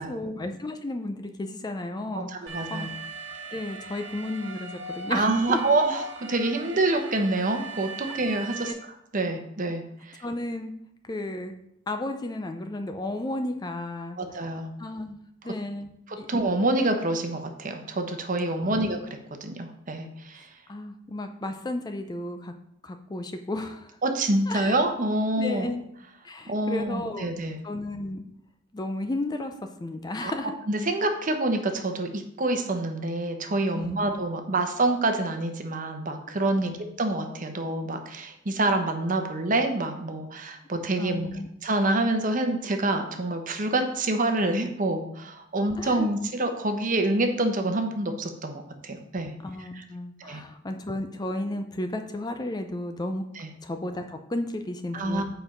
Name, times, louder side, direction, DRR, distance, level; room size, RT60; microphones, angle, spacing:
voice 1, 0.0-2.9 3.5-5.6 10.2-10.7 11.0-11.5 11.9-15.2 15.4-15.9 16.2-16.3 18.7-18.9 20.4-22.5 22.8-24.0 24.5-24.8 25.4-25.8 26.2-27.3 27.6-28.2 28.7-29.5 29.8-30.6 33.7-34.0 36.6-36.8 41.0-41.5 45.6-46.1 49.4-53.2 53.6-55.2, left 1 dB, 20° left, 7 dB, 0.4 m, -33 dB
voice 2, 2.5-2.9 5.1-8.7 9.1-10.2 14.2-14.7 16.1-19.0 19.4-20.5 24.0-25.7 26.5-27.6 30.2-30.3 30.7-41.3 41.6-49.3 49.7-49.8 50.2-50.4 53.4-53.5 54.9-55.2, right 2 dB, 40° right, 5 dB, 0.9 m, -27 dB
Alarm, 2.5-8.7, right 3 dB, 65° right, 1.4 m, -39 dB
7.8 x 4.5 x 5.1 m, 0.75 s
head